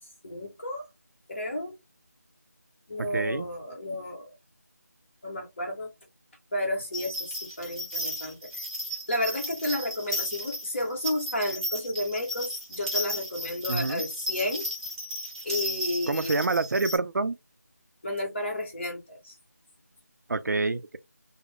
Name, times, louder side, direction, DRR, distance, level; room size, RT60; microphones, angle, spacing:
voice 1, 0.2-0.9 1.3-1.7 2.9-4.3 5.2-5.9 6.5-8.7 9.1-14.7 15.4-16.4 18.0-19.4, left 1 dB, 45° left, 1.1 m, -32 dB
voice 2, 3.0-3.5 13.7-14.0 16.1-17.4 20.3-21.0, right 3 dB, 75° right, 0.4 m, -27 dB
sound 1, 6.9-17.0, equal, 15° right, 0.8 m, -34 dB
2.4 x 2.0 x 3.3 m
figure-of-eight pair, 170°, 9 cm